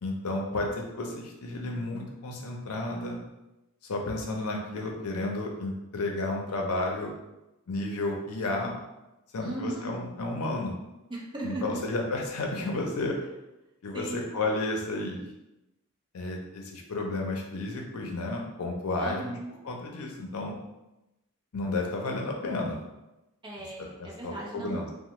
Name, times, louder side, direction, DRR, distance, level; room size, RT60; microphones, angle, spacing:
voice 1, 0.0-3.2 3.9-7.1 7.7-8.8 9.3-10.8 11.4-13.2 13.8-15.2 16.1-19.4 19.6-20.6 21.5-22.8 23.8-24.9, left 2 dB, 85° left, 1 dB, 0.6 m, -32 dB
voice 2, 9.4-9.9 11.1-11.8 13.9-14.5 19.0-19.6 23.4-24.9, right 2 dB, 20° right, -3 dB, 0.5 m, -37 dB
3.0 x 2.1 x 3.0 m, 0.96 s
head